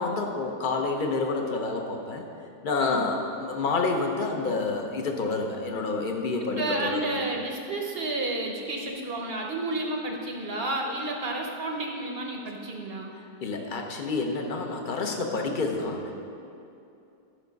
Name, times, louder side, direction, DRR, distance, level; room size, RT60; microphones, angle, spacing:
voice 1, 0.0-2.2 2.6-7.2 13.2-16.2, left 3 dB, 40° left, 2 dB, 0.8 m, -29 dB
voice 2, 6.6-13.1, right 2 dB, 45° right, 1 dB, 0.9 m, -31 dB
13.5 x 5.7 x 5.2 m, 2.7 s
omnidirectional pair, 1.8 m